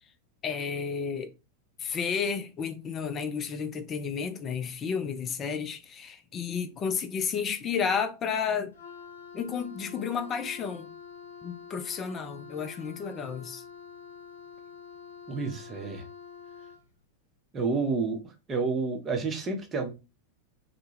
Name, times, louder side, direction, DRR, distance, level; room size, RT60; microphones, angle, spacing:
voice 1, 0.4-1.3 1.8-8.7 9.3-10.9 11.4-13.6, left 6 dB, 25° left, 0.4 m, -32 dB
Wind instrument woodwind instrument, 8.7-16.9, left 6 dB, 75° left, 0.6 m, -47 dB
voice 2, 15.3-16.1 17.5-19.9, right 4 dB, 20° right, 0.6 m, -30 dB
2.2 x 2.1 x 3.0 m
figure-of-eight pair, 90°, 0 cm